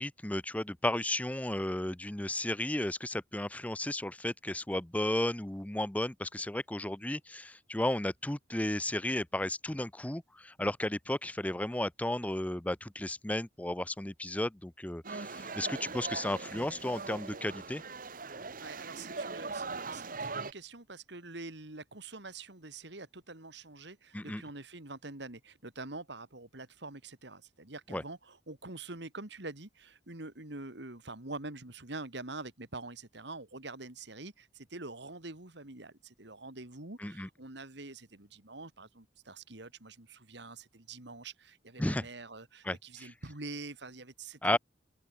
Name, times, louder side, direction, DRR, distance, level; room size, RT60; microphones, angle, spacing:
voice 1, 0.0-17.8 24.1-24.4 27.9-28.0 37.0-37.3 41.8-42.1 42.6-43.1 44.4-44.6, left 1 dB, 10° left, 0.5 m, -34 dB
sound 1, 15.0-20.5, right 4 dB, 45° right, 1.5 m, -40 dB
voice 2, 18.6-44.6, right 2 dB, 60° right, 2.5 m, -45 dB
open air
head